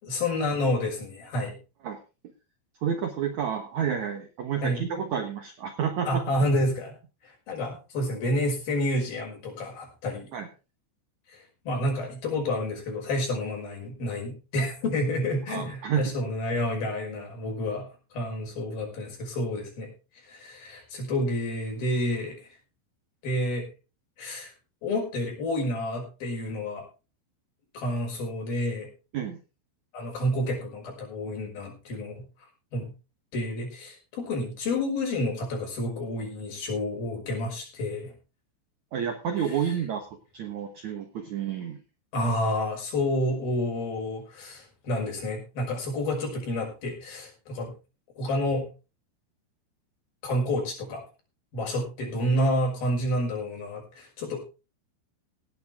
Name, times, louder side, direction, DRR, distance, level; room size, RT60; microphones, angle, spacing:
voice 1, 0.0-1.6 4.6-4.8 6.1-7.0 7.2-10.4 11.3-17.9 18.1-19.9 20.3-22.5 23.2-23.6 24.2-24.5 24.8-26.9 27.7-28.9 29.9-32.3 32.7-32.9 33.3-38.1 39.4-39.7 42.1-47.7 48.2-48.7 50.2-51.0 51.5-54.4, left 1 dB, 50° left, 1 dB, 7.1 m, -29 dB
voice 2, 2.8-6.2 10.3-10.5 15.5-16.0 29.1-29.4 38.9-40.0 40.3-41.8, right 8 dB, 85° right, 7 dB, 1.6 m, -30 dB
18.0 x 10.0 x 3.6 m, 0.32 s
omnidirectional pair, 5.4 m